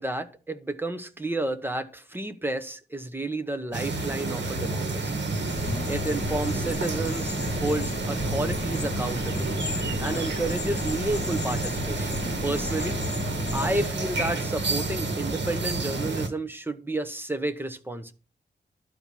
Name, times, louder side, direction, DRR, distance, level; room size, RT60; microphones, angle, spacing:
voice 1, 0.0-5.2 5.9-13.0 13.5-18.1, right 2 dB, 10° right, 9 dB, 1.1 m, -31 dB
sound 1, 3.7-16.3, right 3 dB, 75° right, 1.7 m, -30 dB
sound 2, 5.5-13.9, left 4 dB, 40° left, 1.2 m, -35 dB
11.5 x 4.6 x 7.0 m, 0.36 s
wide cardioid pair, 115°, 18 cm